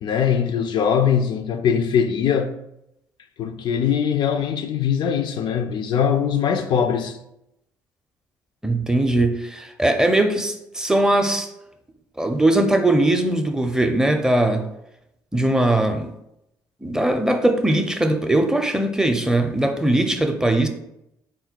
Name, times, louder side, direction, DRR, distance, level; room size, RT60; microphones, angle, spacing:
voice 1, 0.0-2.6 3.4-7.2, left 7 dB, 60° left, 0.3 m, -21 dB
voice 2, 8.6-11.5 12.2-14.7 15.3-16.1 16.8-20.7, right 1 dB, 5° right, 0.5 m, -20 dB
3.6 x 2.2 x 4.3 m
supercardioid pair, 65°, 9 cm